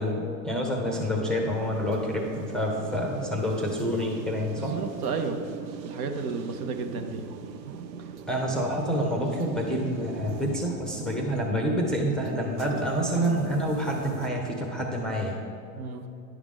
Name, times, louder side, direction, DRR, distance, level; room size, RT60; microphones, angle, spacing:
voice 1, 0.0-4.8 8.3-15.4, equal, ahead, 0 dB, 0.6 m, -28 dB
sound 1, 0.8-14.3, right 7 dB, 85° right, 0.6 m, -40 dB
voice 2, 4.6-5.4 5.8-7.2 15.7-16.0, right 4 dB, 60° right, 6 dB, 0.9 m, -32 dB
10.5 x 4.8 x 3.7 m, 2.7 s
hypercardioid pair, 110°, 50 cm